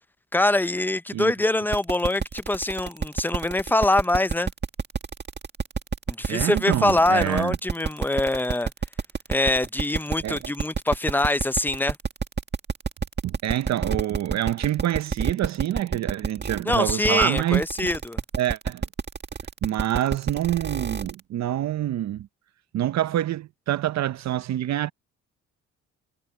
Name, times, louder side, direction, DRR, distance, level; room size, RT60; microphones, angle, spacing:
voice 1, 0.3-4.5 6.1-8.7 9.3-12.0 16.7-18.2, left 2 dB, 5° left, 0.6 m, -24 dB
sound 1, 1.7-21.2, right 5 dB, 35° right, 1.8 m, -28 dB
voice 2, 6.3-7.6 10.2-10.5 13.2-17.9 18.4-18.8 19.6-22.3 22.7-24.9, right 12 dB, 60° right, 0.7 m, -26 dB
cardioid pair, 90°, 30 cm